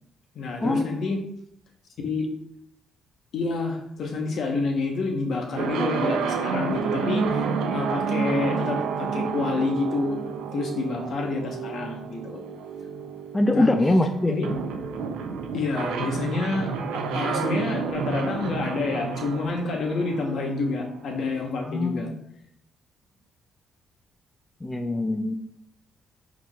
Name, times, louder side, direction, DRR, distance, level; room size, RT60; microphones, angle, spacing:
voice 1, 0.3-1.2 2.0-2.3 3.3-7.5 7.7-10.2 10.5-12.4 13.5-13.7 14.3-14.6 15.5-16.7 17.1-22.1, left 3 dB, 65° left, 2 dB, 0.9 m, -28 dB
sound 1, 5.5-21.3, right 5 dB, 90° right, 0.4 m, -30 dB
voice 2, 13.3-14.3 21.7-22.2 24.6-25.3, left 1 dB, 15° left, 5 dB, 0.4 m, -23 dB
4.6 x 4.0 x 2.3 m, 0.71 s
cardioid pair, 90°, 0 cm